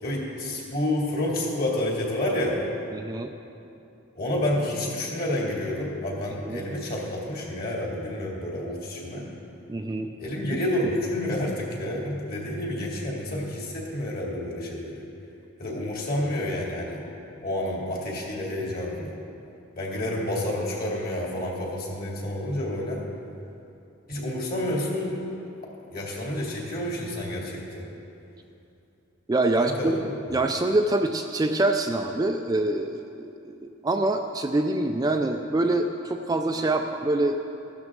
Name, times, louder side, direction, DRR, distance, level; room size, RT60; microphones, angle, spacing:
voice 1, 0.0-2.6 4.1-9.3 10.2-15.0 15.6-17.0 17.4-19.1 19.8-23.0 24.1-25.2 25.9-27.9 29.6-29.9 30.3-30.4, left 1 dB, 45° left, -3 dB, 2.4 m, -29 dB
voice 2, 2.9-3.3 6.5-6.6 9.7-10.1 29.3-30.0 30.3-33.6 33.8-37.4, right 2 dB, 20° right, 4 dB, 0.3 m, -25 dB
15.0 x 12.0 x 3.7 m, 2.7 s
head